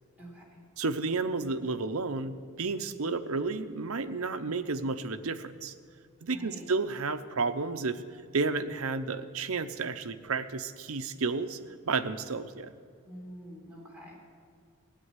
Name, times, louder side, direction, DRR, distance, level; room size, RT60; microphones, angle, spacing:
voice 1, 0.2-0.6 6.3-6.7 13.0-14.2, equal, 5° right, -4 dB, 3.7 m, -47 dB
voice 2, 0.8-5.7 6.2-8.0 8.3-11.6 11.9-12.7, right 4 dB, 85° right, 10 dB, 0.8 m, -31 dB
16.0 x 8.4 x 9.7 m, 2.1 s
head